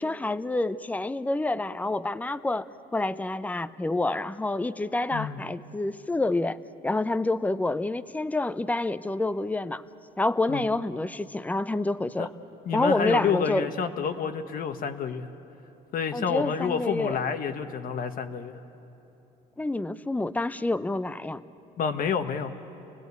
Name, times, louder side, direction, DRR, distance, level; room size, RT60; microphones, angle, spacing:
voice 1, 0.0-2.7 2.9-9.8 10.2-12.3 12.7-13.7 16.1-17.2 19.6-21.4, left 2 dB, 10° left, 14 dB, 0.6 m, -28 dB
voice 2, 5.1-5.4 10.5-10.6 12.2-12.3 12.6-15.3 15.9-18.6 21.8-22.5, left 6 dB, 55° left, 7 dB, 1.4 m, -29 dB
29.0 x 19.0 x 8.3 m, 3.0 s
cardioid pair, 110°, 17 cm